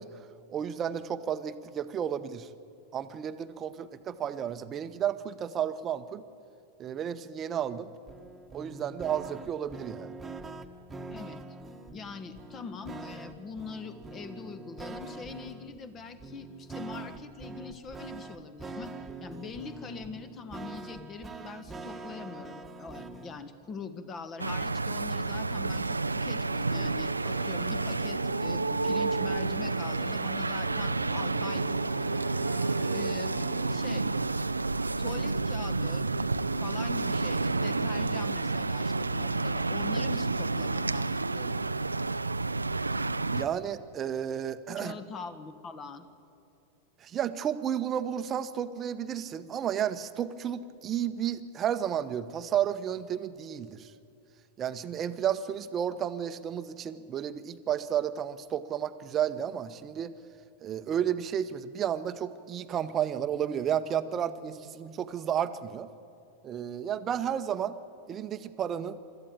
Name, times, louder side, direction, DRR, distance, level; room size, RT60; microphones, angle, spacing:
voice 1, 0.0-2.5 2.9-6.2 6.8-7.9 8.5-10.1 43.3-45.0 47.0-53.9 54.6-60.1 60.6-65.9 66.4-67.8 68.1-69.0, right 9 dB, 25° right, 12 dB, 0.9 m, -32 dB
sound 1, 8.1-23.4, right 3 dB, 10° right, 1.5 m, -44 dB
voice 2, 11.9-18.9 19.2-32.2 32.9-33.3 33.7-34.1 35.0-36.0 36.6-41.6 44.8-46.1, left 5 dB, 25° left, 11 dB, 1.5 m, -43 dB
sound 2, 24.4-43.5, right 3 dB, 80° right, 0.5 m, -30 dB
sound 3, 25.7-34.0, right 1 dB, 80° left, 4.3 m, -44 dB
25.0 x 13.5 x 8.8 m, 2.7 s
figure-of-eight pair, 90°, 0 cm